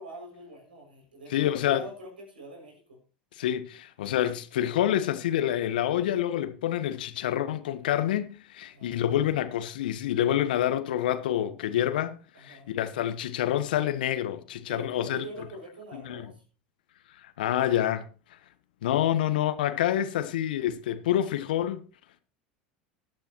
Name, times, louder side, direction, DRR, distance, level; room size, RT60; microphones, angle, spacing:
voice 1, 0.0-3.0 8.7-8.9 12.3-12.7 14.7-16.4 19.7-20.1, right 1 dB, 80° right, 6.5 m, -44 dB
voice 2, 1.3-1.8 3.4-15.2 16.0-16.3 17.2-18.1 18.8-21.8, left 11 dB, 70° left, 1.2 m, -27 dB
15.0 x 11.5 x 3.1 m
figure-of-eight pair, 80°, 5 cm